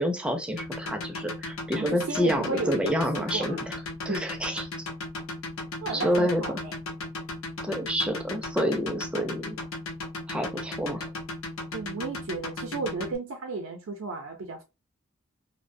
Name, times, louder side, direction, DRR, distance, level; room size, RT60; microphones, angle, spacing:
voice 1, 0.0-3.8 4.0-4.7 5.9-6.4 7.6-9.6 10.3-11.1, equal, 5° right, 0.4 m, -28 dB
sound 1, 0.6-13.2, left 2 dB, 90° left, 0.7 m, -35 dB
voice 2, 1.7-3.6 4.1-4.2 5.8-6.8 11.7-14.6, right 3 dB, 80° right, 0.5 m, -34 dB
2.6 x 2.0 x 2.5 m
head